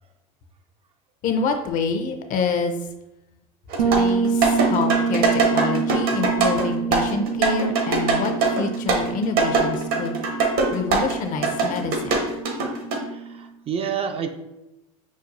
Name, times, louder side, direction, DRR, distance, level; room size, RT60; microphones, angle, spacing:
voice 1, 1.2-2.7 3.8-10.2 10.7-12.2, left 4 dB, 45° left, 6 dB, 0.6 m, -27 dB
sound 1, 3.7-11.1 11.4-13.0, right 3 dB, 55° right, 0.8 m, -22 dB
Bass guitar, 3.8-13.5, right 5 dB, 90° right, 0.5 m, -27 dB
voice 2, 13.0-14.3, right 7 dB, 35° right, 6 dB, 0.4 m, -29 dB
6.1 x 2.3 x 2.6 m, 0.93 s
hypercardioid pair, 95°, 18 cm